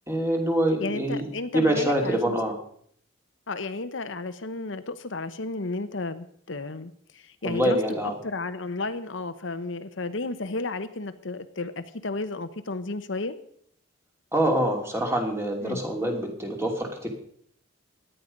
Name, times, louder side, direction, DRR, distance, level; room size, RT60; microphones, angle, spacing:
voice 1, 0.1-1.2 1.5-2.6 7.4-8.1 14.3-17.1, right 1 dB, 15° right, 2 dB, 2.9 m, -25 dB
voice 2, 0.8-2.4 3.5-7.8 8.2-13.3 15.6-15.8, left 3 dB, 75° left, 10 dB, 1.0 m, -33 dB
17.0 x 11.5 x 5.3 m, 0.63 s
head